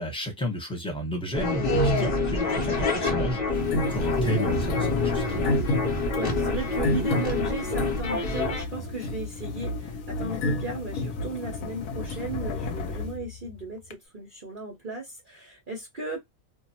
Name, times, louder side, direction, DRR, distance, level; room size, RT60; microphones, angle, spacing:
voice 1, 0.0-5.5, equal, 5° left, 0.9 m, -33 dB
sound 1, 1.3-8.6, left 2 dB, 50° left, 0.8 m, -26 dB
sound 2, 3.3-13.9, left 3 dB, 85° left, 1.1 m, -36 dB
sound 3, 3.5-13.1, left 1 dB, 70° left, 1.1 m, -34 dB
voice 2, 6.1-16.2, right 2 dB, 40° right, 0.8 m, -36 dB
2.6 x 2.0 x 2.7 m
omnidirectional pair, 1.6 m